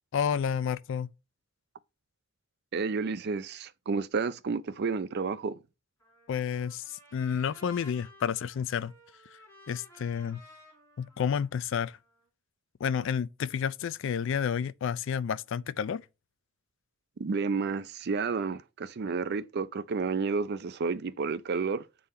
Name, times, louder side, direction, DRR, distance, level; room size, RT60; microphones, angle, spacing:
voice 1, 0.1-1.1 6.3-8.9 9.7-10.4 11.0-12.0 12.8-16.0, left 7 dB, 60° left, 0.3 m, -30 dB
voice 2, 2.7-5.6 17.2-21.8, right 4 dB, 50° right, 0.4 m, -31 dB
Trumpet, 6.0-12.2, left 1 dB, 15° left, 4.0 m, -56 dB
8.0 x 3.9 x 4.2 m
head